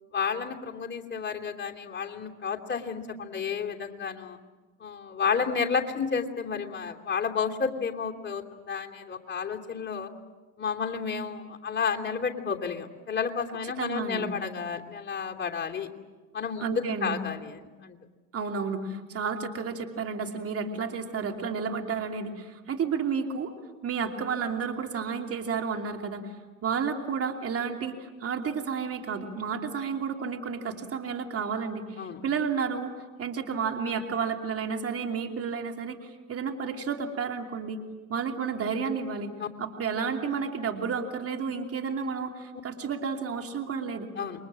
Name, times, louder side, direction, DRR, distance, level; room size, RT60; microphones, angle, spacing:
voice 1, 0.1-4.4 4.8-10.1 10.6-15.9 16.3-18.0 32.0-32.2 39.4-39.5 44.2-44.4, left 6 dB, 25° left, 2 dB, 3.0 m, -31 dB
voice 2, 13.8-14.3 16.6-17.2 18.3-23.5 23.8-26.3 26.6-32.9 33.2-37.8 38.1-39.3 39.6-44.1, right 6 dB, 35° right, 3 dB, 2.9 m, -31 dB
28.5 x 23.0 x 7.6 m, 1.3 s
hypercardioid pair, 85°, 40 cm